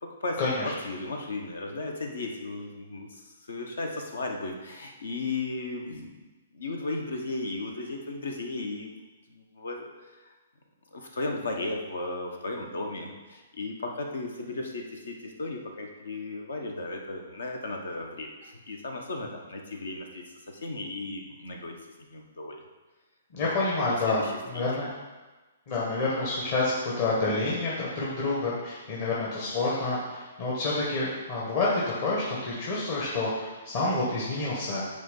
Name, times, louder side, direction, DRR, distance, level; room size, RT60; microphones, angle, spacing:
voice 1, 0.0-6.3 6.5-8.9 9.3-10.3 10.9-22.6 23.3-23.5 23.8-24.6, left 2 dB, 75° left, 3 dB, 1.2 m, -35 dB
voice 2, 23.3-24.2 24.5-24.9 25.7-34.8, left 2 dB, 45° left, -6 dB, 1.7 m, -28 dB
9.2 x 3.3 x 5.4 m, 1.2 s
figure-of-eight pair, 125°, 0 cm